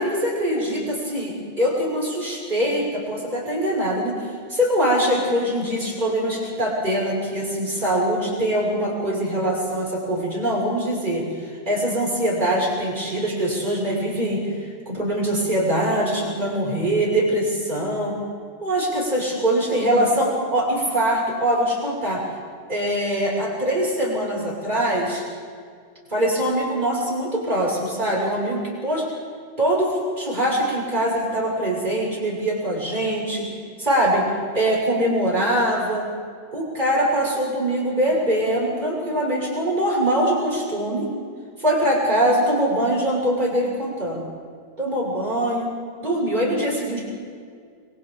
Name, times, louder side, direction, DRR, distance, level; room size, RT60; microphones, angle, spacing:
voice 1, 0.0-4.2 4.5-18.2 18.6-22.2 22.7-25.2 26.1-29.1 29.6-33.5 33.8-34.3 34.5-36.1 36.5-41.1 41.6-44.3 44.8-45.7 46.0-47.0, right 1 dB, 40° right, -4 dB, 6.9 m, -23 dB
30.0 x 23.0 x 4.0 m, 2.1 s
omnidirectional pair, 1.2 m